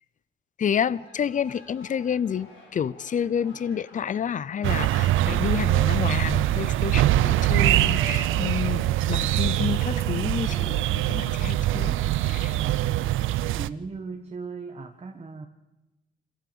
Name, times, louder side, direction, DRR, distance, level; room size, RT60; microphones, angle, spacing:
voice 1, 0.6-11.9 12.2-12.6, left 8 dB, 40° left, 21 dB, 0.6 m, -29 dB
sound 1, 0.7-6.0, left 2 dB, 90° left, 5.5 m, -53 dB
sound 2, 4.6-13.7, right 14 dB, 85° right, 0.6 m, -23 dB
sound 3, 5.5-6.9 7.5-9.5 9.8-12.8, left 3 dB, 20° left, 1.6 m, -46 dB
voice 2, 13.5-15.5, right 4 dB, 30° right, 4 dB, 1.5 m, -37 dB
26.5 x 14.0 x 6.9 m, 1.0 s
cardioid pair, 90°, 20 cm